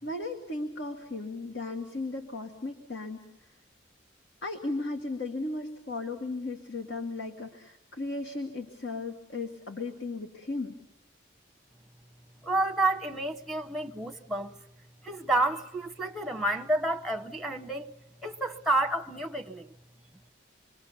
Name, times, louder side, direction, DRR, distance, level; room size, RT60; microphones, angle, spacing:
voice 1, 0.0-3.3 4.4-10.8, left 2 dB, 75° left, 1.9 m, -36 dB
voice 2, 12.4-14.5 15.0-17.9 18.2-19.7, right 2 dB, ahead, 0.9 m, -29 dB
27.0 x 23.0 x 7.1 m
head